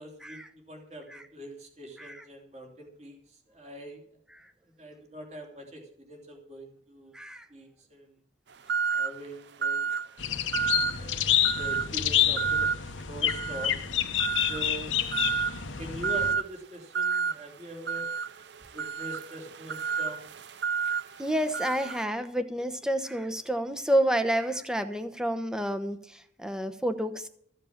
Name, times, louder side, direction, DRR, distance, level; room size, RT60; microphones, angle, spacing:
voice 1, 0.0-4.0 4.8-7.1 7.5-8.1 8.9-9.9 10.3-10.5 11.0-13.8 14.5-14.9 15.8-18.1 18.7-20.3, right 1 dB, 35° right, 1 dB, 3.1 m, -43 dB
voice 2, 7.1-7.5 21.2-27.3, right 1 dB, 5° right, 8 dB, 0.9 m, -29 dB
sound 1, 8.7-9.2 9.6-10.1 10.5-11.0 11.4-11.9 12.4-12.8 13.3-13.7 14.2-14.7 15.1-15.6 16.0-16.5 16.9-17.3 17.9-22.0, right 6 dB, 65° right, 0.5 m, -30 dB
sound 2, 10.2-16.3, left 10 dB, 85° left, 1.1 m, -28 dB
14.5 x 7.7 x 7.3 m, 0.65 s
head